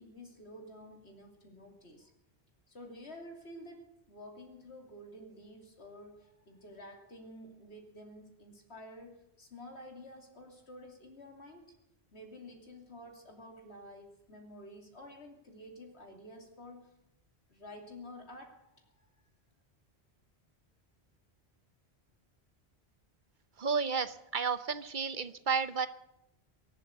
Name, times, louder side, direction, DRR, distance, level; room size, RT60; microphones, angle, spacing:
voice 1, 0.0-2.1 2.7-11.7 12.1-16.9 17.5-19.1, left 1 dB, 85° left, 2 dB, 3.1 m, -50 dB
voice 2, 23.6-25.9, right 5 dB, 50° right, 12 dB, 0.9 m, -32 dB
23.0 x 7.7 x 8.1 m, 0.83 s
omnidirectional pair, 1.1 m